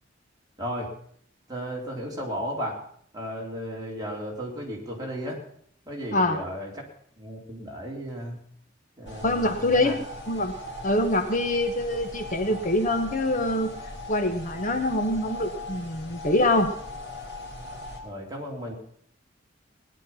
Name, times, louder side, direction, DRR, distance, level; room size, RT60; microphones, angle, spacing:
voice 1, 0.6-0.9 1.5-2.8 3.1-5.4 5.9-6.7 7.2-8.4 9.0-9.9 18.0-18.7, equal, 20° right, -2 dB, 3.5 m, -34 dB
sound 1, 9.1-18.0, left 1 dB, 65° left, 3.9 m, -39 dB
voice 2, 9.2-10.0 10.3-10.5 10.8-13.7 14.1-16.7, left 1 dB, 45° left, 7 dB, 1.2 m, -24 dB
18.0 x 10.5 x 5.7 m, 0.63 s
head